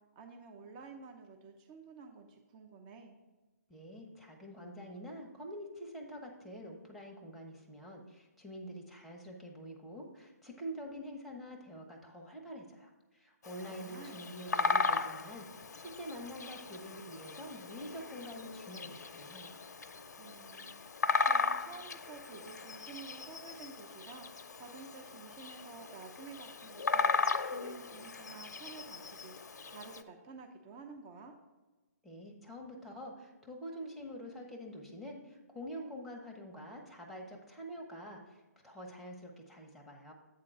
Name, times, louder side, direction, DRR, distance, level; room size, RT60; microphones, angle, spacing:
voice 1, 0.2-3.2 13.7-14.3 20.2-24.3 24.5-29.3 29.7-31.4, right 4 dB, 30° right, 4 dB, 0.7 m, -51 dB
voice 2, 3.7-15.5 15.7-19.6 32.0-40.1, equal, ahead, 0 dB, 1.0 m, -46 dB
Bird vocalization bird call bird song, 13.4-30.0, left 4 dB, 75° left, 0.6 m, -37 dB
8.4 x 3.7 x 6.6 m, 1.2 s
hypercardioid pair, 145°, 9 cm